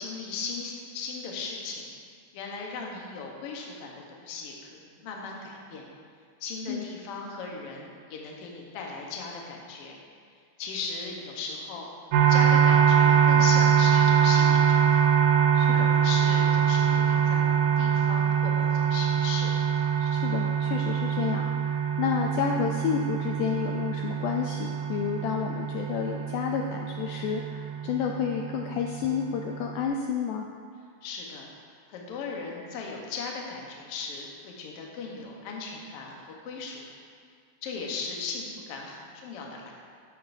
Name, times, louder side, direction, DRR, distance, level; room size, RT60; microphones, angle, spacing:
voice 1, 0.0-1.8 2.3-5.9 6.4-10.0 10.6-11.9 12.3-15.1 15.7-19.5 25.2-25.3 31.0-31.5 31.9-36.8 37.6-39.7, left 4 dB, 65° left, -1 dB, 1.5 m, -37 dB
sound 1, 12.1-29.8, right 8 dB, 75° right, 2.0 m, -24 dB
voice 2, 15.5-15.9 20.0-30.5, left 7 dB, 80° left, 2 dB, 1.9 m, -30 dB
12.5 x 7.5 x 2.6 m, 2.1 s
omnidirectional pair, 3.9 m